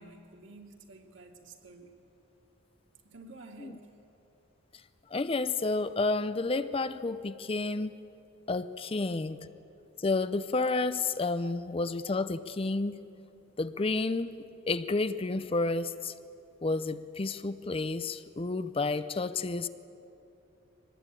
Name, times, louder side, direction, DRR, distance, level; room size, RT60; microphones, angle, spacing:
voice 1, 0.0-2.0 3.0-3.9 8.9-9.1 11.4-11.6, right 2 dB, 60° right, 2 dB, 2.4 m, -51 dB
voice 2, 5.1-8.0 8.5-9.4 10.0-13.0 13.6-14.3 14.7-16.1 16.6-19.7, left 3 dB, 25° left, 13 dB, 0.5 m, -30 dB
23.5 x 19.5 x 9.0 m, 2.9 s
head